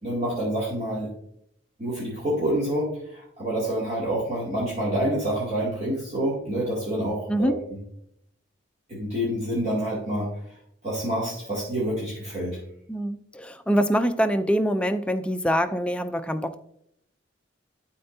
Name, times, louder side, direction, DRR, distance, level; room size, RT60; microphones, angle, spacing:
voice 1, 0.0-1.1 1.8-7.8 8.9-10.3 10.8-12.6, right 1 dB, 35° right, -8 dB, 2.5 m, -27 dB
voice 2, 12.9-16.6, equal, 5° left, 8 dB, 0.4 m, -24 dB
12.5 x 4.4 x 2.7 m, 0.73 s
head